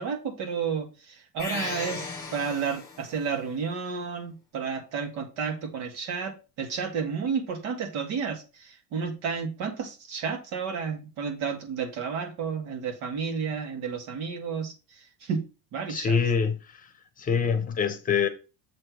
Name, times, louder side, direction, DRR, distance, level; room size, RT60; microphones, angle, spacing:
voice 1, 0.0-15.4 15.7-16.2, right 6 dB, 65° right, 2.0 m, -32 dB
sound 1, 1.4-3.3, left 4 dB, 10° left, 1.4 m, -36 dB
voice 2, 15.9-16.5 17.2-18.3, left 6 dB, 25° left, 0.9 m, -24 dB
7.7 x 3.3 x 6.3 m
cardioid pair, 155°, 32 cm